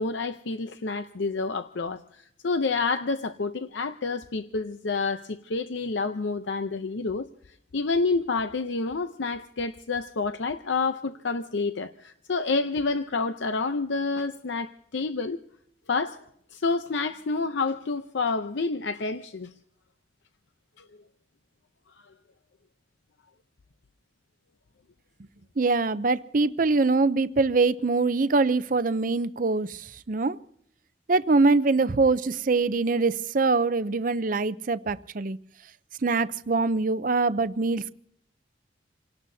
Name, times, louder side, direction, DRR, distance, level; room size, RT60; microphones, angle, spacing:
voice 1, 0.0-7.3 7.7-15.5 15.9-16.2 16.5-19.5, left 4 dB, 80° left, 0.7 m, -28 dB
voice 2, 25.6-30.4 31.1-35.4 36.0-37.9, right 3 dB, 45° right, 0.6 m, -23 dB
28.5 x 18.0 x 2.7 m
head